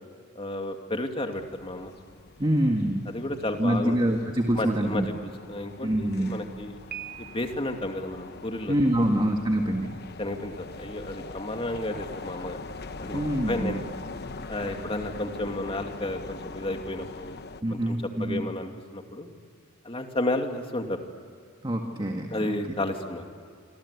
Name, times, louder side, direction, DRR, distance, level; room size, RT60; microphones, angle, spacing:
voice 1, 0.4-1.9 3.1-4.0 4.6-6.8 7.2-9.1 10.2-12.6 13.0-13.8 14.5-17.4 17.7-19.4 19.8-21.0 22.3-23.2, left 1 dB, 25° left, 4 dB, 2.5 m, -32 dB
sound 1, 1.3-17.6, left 3 dB, 50° left, 1.1 m, -42 dB
voice 2, 2.4-3.1 3.6-5.1 5.8-6.4 8.7-10.0 13.1-13.8 17.6-18.5 21.6-22.5, right 1 dB, 25° right, 2 dB, 1.8 m, -25 dB
Piano, 6.9-7.9, right 12 dB, 45° right, 1.3 m, -41 dB
27.0 x 26.5 x 8.4 m, 2.1 s
head